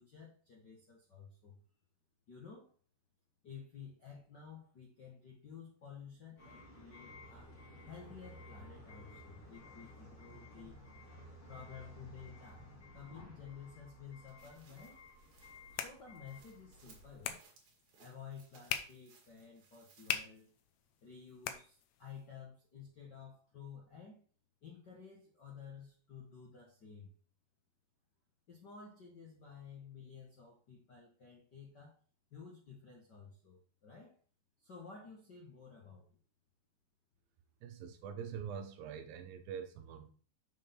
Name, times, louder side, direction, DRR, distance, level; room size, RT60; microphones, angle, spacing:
voice 1, 0.0-1.6 2.3-2.7 3.4-7.6 7.8-10.8 11.5-15.0 15.7-17.4 18.0-20.5 21.0-24.2 24.6-27.1 28.5-32.0 32.3-34.2 34.6-36.2, left 6 dB, 60° left, 1.1 m, -53 dB
sound 1, 6.4-17.3, left 1 dB, 30° left, 3.5 m, -55 dB
sound 2, 14.3-20.6 21.0-21.1, right 5 dB, 60° right, 2.9 m, -66 dB
sound 3, 15.2-22.3, left 9 dB, 85° left, 1.5 m, -45 dB
voice 2, 37.6-40.1, right 7 dB, 85° right, 2.7 m, -44 dB
6.7 x 6.4 x 4.3 m
omnidirectional pair, 4.1 m